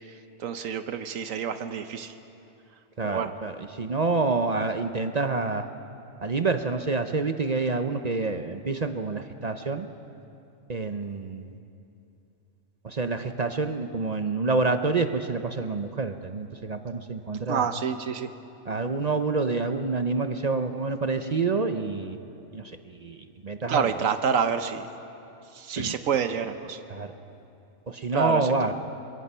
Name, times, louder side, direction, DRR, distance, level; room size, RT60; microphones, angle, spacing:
voice 1, 0.4-2.1 3.0-3.3 17.5-18.3 23.7-24.9 25.5-26.8 28.1-28.7, right 7 dB, 75° right, 9 dB, 1.2 m, -28 dB
voice 2, 3.0-5.7 6.2-9.9 10.7-11.5 12.8-17.7 18.7-22.2 22.5-22.6 23.0-23.2 23.4-23.9 25.8-25.9 26.9-27.1 27.9-28.7, right 3 dB, 40° right, 8 dB, 0.6 m, -27 dB
25.0 x 22.0 x 5.5 m, 2.8 s
omnidirectional pair, 1.4 m